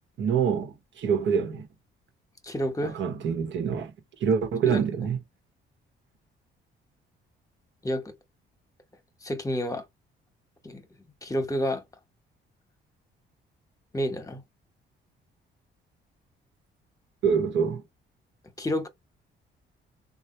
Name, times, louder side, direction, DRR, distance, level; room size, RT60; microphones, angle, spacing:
voice 1, 0.2-1.7 2.8-3.9 4.2-5.2 17.2-17.8, right 6 dB, 70° right, 1.3 m, -26 dB
voice 2, 2.4-3.0 4.7-4.8 7.8-8.1 9.2-9.8 10.6-10.9 11.2-11.8 13.9-14.4 18.6-18.9, equal, 15° left, 1.2 m, -29 dB
3.3 x 2.4 x 4.3 m
cardioid pair, 90°, 20 cm